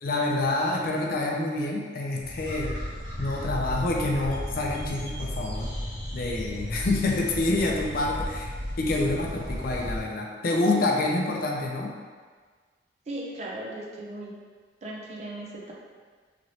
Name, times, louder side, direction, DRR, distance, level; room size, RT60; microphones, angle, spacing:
voice 1, 0.0-2.7 3.2-5.7 6.1-8.5 8.8-11.9, left 2 dB, 50° left, -1 dB, 0.4 m, -27 dB
sound 1, 2.2-10.0, equal, 65° right, 1.4 m, -34 dB
voice 2, 13.1-14.4 14.8-15.7, right 1 dB, 35° right, -2 dB, 0.4 m, -37 dB
2.9 x 2.9 x 2.7 m, 1.5 s
head